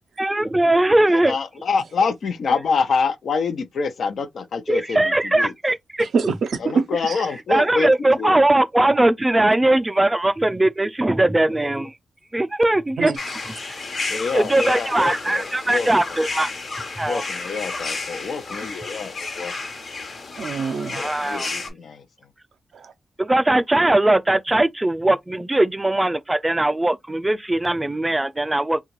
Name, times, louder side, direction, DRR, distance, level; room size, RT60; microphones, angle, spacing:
voice 1, 0.2-1.3 4.7-6.1 7.5-11.9 12.3-13.1 13.7-13.8 14.3-16.5 17.0-17.4 20.9-21.5 23.2-28.8, right 1 dB, 20° right, 0.4 m, -20 dB
voice 2, 1.1-5.0 5.3-5.5 6.6-7.9 8.2-8.4 14.1-15.9 17.0-19.1 19.4-19.5 21.0-22.0, left 5 dB, 70° left, 0.5 m, -26 dB
voice 3, 6.0-7.3 13.0-13.2 20.4-21.0 22.7-22.9, right 5 dB, 75° right, 0.5 m, -25 dB
sound 1, 13.2-21.7, left 3 dB, 55° left, 1.0 m, -32 dB
2.9 x 2.3 x 3.0 m
cardioid pair, 50°, 0 cm